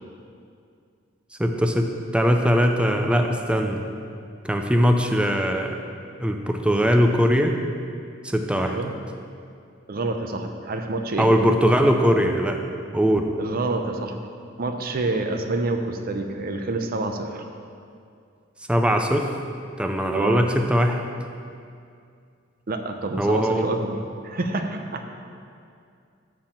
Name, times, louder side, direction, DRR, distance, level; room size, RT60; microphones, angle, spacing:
voice 1, 1.4-3.8 4.4-5.8 6.2-7.6 8.2-8.8 11.2-12.6 12.9-13.3 18.7-19.3 19.8-21.0 23.2-23.7, equal, 5° right, 4 dB, 0.4 m, -20 dB
voice 2, 8.6-8.9 9.9-11.3 13.4-14.2 14.6-17.5 20.1-20.4 22.7-24.0 24.2-25.0, right 2 dB, 50° right, 5 dB, 0.6 m, -27 dB
6.7 x 5.7 x 7.2 m, 2.4 s
head